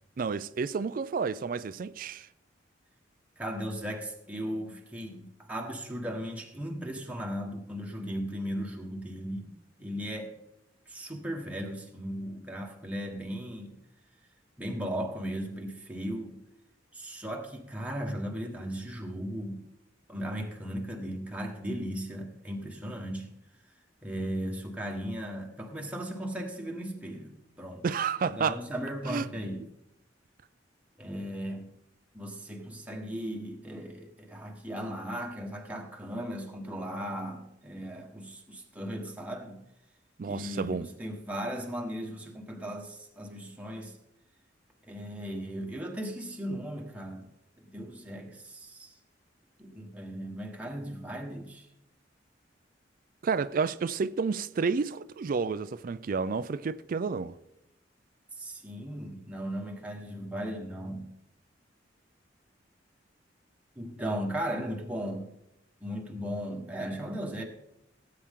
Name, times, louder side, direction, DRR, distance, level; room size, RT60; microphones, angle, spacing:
voice 1, 0.2-2.3 27.8-28.6 29.1-29.3 40.2-40.9 53.2-57.3, right 5 dB, 50° right, 0.4 m, -30 dB
voice 2, 3.4-9.5 9.8-10.4 10.9-13.7 14.6-16.4 16.9-19.6 20.1-23.3 24.0-27.8 28.2-29.6 31.0-31.7 32.1-39.6 40.2-44.0 44.8-47.2 47.6-48.9 49.6-51.7 58.4-61.1 63.7-65.3 65.8-67.4, equal, 10° right, 1.5 m, -37 dB
17.5 x 8.6 x 3.7 m
head